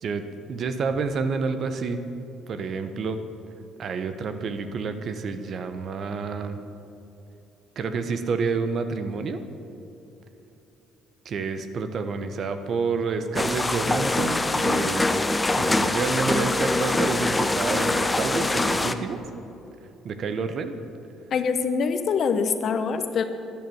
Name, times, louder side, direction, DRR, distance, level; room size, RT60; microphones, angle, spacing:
voice 1, 0.0-2.0 2.5-3.2 3.8-6.6 7.8-9.4 11.2-15.2 15.6-19.4 20.0-20.8, right 4 dB, 55° right, 9 dB, 1.1 m, -29 dB
sound 1, 13.4-18.9, left 2 dB, 20° left, 0.9 m, -24 dB
voice 2, 21.3-23.2, left 5 dB, 55° left, 9 dB, 1.1 m, -24 dB
12.0 x 11.0 x 7.8 m, 2.9 s
hypercardioid pair, 60°, 0 cm